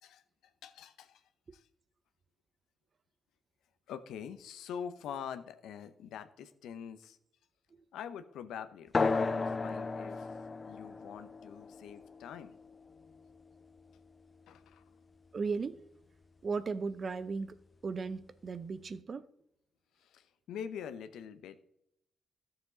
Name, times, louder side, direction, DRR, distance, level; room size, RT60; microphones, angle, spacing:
voice 1, 0.0-1.2 1.5-1.6 3.9-7.2 7.9-10.4 10.6-12.5 14.5-14.8 20.0-21.6, left 8 dB, 80° left, 0.7 m, -45 dB
sound 1, 8.9-14.0, left 4 dB, 40° left, 0.8 m, -35 dB
voice 2, 15.3-15.8 16.4-17.6 17.8-19.3, right 4 dB, 50° right, 0.6 m, -36 dB
13.0 x 7.0 x 3.9 m
supercardioid pair, 45°, 0 cm